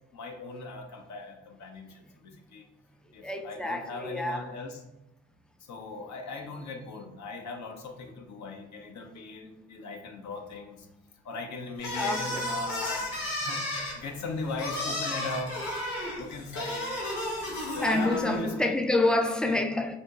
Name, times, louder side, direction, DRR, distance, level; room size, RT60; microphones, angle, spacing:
voice 1, 0.1-2.7 3.1-4.8 5.6-10.9 11.2-15.5 16.1-16.9 17.7-18.7 19.4-19.6, left 3 dB, 55° left, 0.7 m, -39 dB
voice 2, 3.2-4.4 12.0-12.4 17.4-17.5 17.8-20.0, left 2 dB, 5° left, 0.3 m, -27 dB
sound 1, 11.8-18.4, left 1 dB, 75° left, 1.0 m, -33 dB
4.2 x 2.8 x 2.3 m
hypercardioid pair, 45°, 34 cm